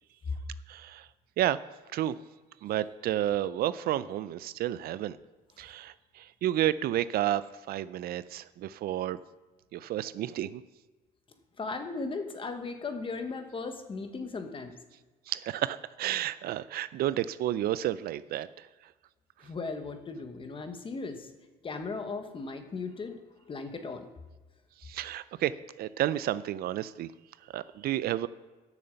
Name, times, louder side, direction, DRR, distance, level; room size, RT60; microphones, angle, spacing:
voice 1, 0.7-1.1 1.4-1.6 1.9-2.1 2.6-5.2 5.6-9.2 9.7-10.6 15.3-18.7 24.8-27.1 27.5-28.3, right 12 dB, 65° right, 16 dB, 0.4 m, -31 dB
voice 2, 11.6-14.7 19.4-21.3 21.6-23.2 23.5-24.1, left 4 dB, 30° left, 7 dB, 1.2 m, -37 dB
9.1 x 6.6 x 6.9 m, 1.2 s
cardioid pair, 110°, 17 cm